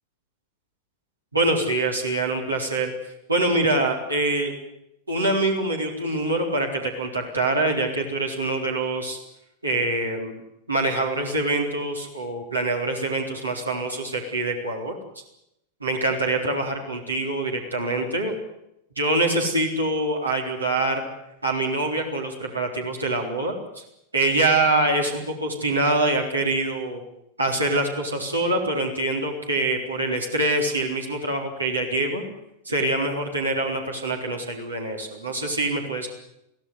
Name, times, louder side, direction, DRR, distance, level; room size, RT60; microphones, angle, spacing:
voice 1, 1.3-2.9 3.3-4.5 5.1-9.2 9.6-10.4 10.7-14.9 15.8-18.4 19.0-21.0 21.4-23.8 24.1-27.0 27.4-32.2 32.7-36.1, right 2 dB, 80° right, 1 dB, 4.0 m, -25 dB
23.0 x 16.5 x 9.7 m, 0.80 s
figure-of-eight pair, 90°, 0 cm